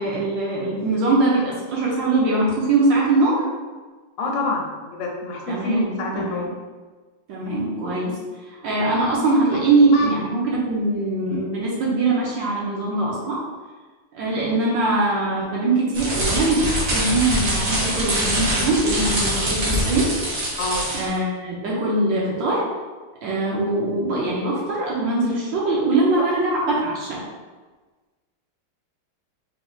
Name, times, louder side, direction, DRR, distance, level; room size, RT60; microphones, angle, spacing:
voice 1, 0.0-3.4 5.5-6.5 7.3-8.2 8.5-13.4 14.1-20.1 20.9-22.6 23.2-27.2, right 2 dB, 65° right, -4 dB, 1.3 m, -22 dB
voice 2, 4.2-6.5 9.5-9.6 9.9-10.1 20.6-20.9 26.2-26.3, left 2 dB, 80° left, 0 dB, 1.4 m, -26 dB
sound 1, 15.9-21.2, right 1 dB, 50° right, 1.2 m, -24 dB
4.2 x 3.2 x 2.4 m, 1.3 s
omnidirectional pair, 2.4 m